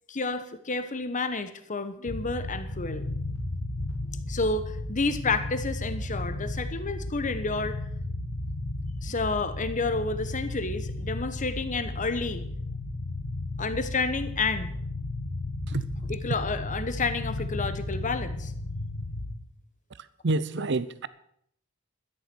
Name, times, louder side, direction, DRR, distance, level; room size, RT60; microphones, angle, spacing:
voice 1, 0.1-3.0 4.3-7.8 9.0-12.4 13.6-14.7 16.1-18.5, left 3 dB, 35° left, 1.1 m, -30 dB
sound 1, 2.1-19.3, left 2 dB, 90° left, 1.8 m, -34 dB
voice 2, 19.9-21.1, right 2 dB, 55° right, 0.7 m, -28 dB
13.0 x 10.0 x 6.2 m
head